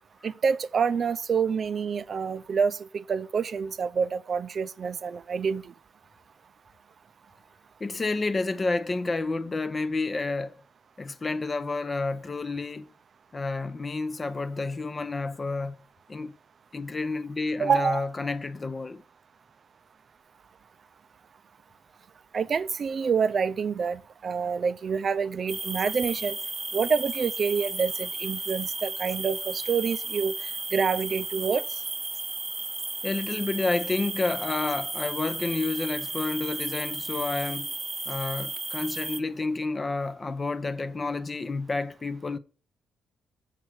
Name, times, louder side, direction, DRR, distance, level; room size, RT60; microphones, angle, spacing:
voice 1, 0.2-5.6 17.6-18.1 22.3-26.4 26.7-30.3 30.7-31.6, right 6 dB, 45° right, 0.5 m, -27 dB
voice 2, 7.8-10.6 11.0-12.9 13.3-15.8 16.1-16.3 16.7-19.0 33.0-37.7 38.1-42.4, left 3 dB, 30° left, 0.6 m, -30 dB
sound 1, 25.5-39.2, right 3 dB, 20° right, 0.9 m, -34 dB
7.5 x 6.0 x 4.8 m
cardioid pair, 90°, 0 cm